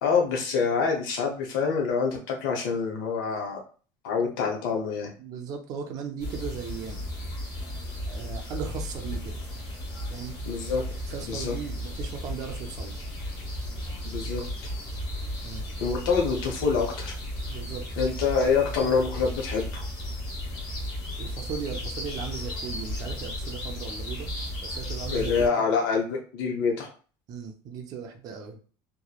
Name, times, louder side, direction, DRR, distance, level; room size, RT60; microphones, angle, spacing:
voice 1, 0.0-3.6 4.0-5.1 10.5-10.8 11.2-11.6 14.0-14.7 15.8-17.2 18.0-19.8 25.1-26.9, left 5 dB, 90° left, 1 dB, 0.8 m, -26 dB
voice 2, 5.2-7.0 8.1-9.4 10.1-10.4 11.0-13.0 15.4-15.6 17.5-17.8 21.2-24.3 24.6-25.5 27.3-28.6, right 6 dB, 35° right, 3 dB, 0.5 m, -37 dB
sound 1, 6.2-25.5, left 1 dB, 50° left, 1.0 m, -35 dB
3.0 x 2.1 x 2.3 m, 0.39 s
cardioid pair, 170°, 11 cm